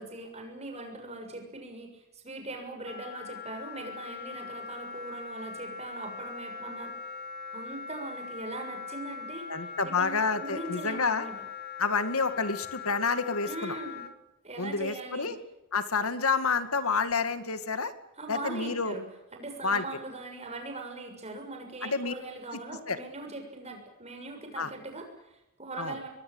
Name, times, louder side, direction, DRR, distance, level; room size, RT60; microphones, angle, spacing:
voice 1, 0.0-6.9 7.5-9.5 9.8-11.4 13.4-14.0 14.4-15.3 18.2-19.0 19.3-26.1, right 2 dB, 30° right, 4 dB, 6.7 m, -41 dB
Wind instrument woodwind instrument, 2.8-14.1, left 6 dB, 45° left, 2.4 m, -41 dB
voice 2, 9.5-11.3 11.8-13.8 14.6-15.3 15.7-17.9 18.3-19.0 19.6-19.8 21.8-22.1 22.9-23.0 24.6-24.7 25.8-25.9, left 4 dB, 90° left, 11 dB, 2.2 m, -29 dB
23.5 x 22.5 x 8.9 m, 0.89 s
head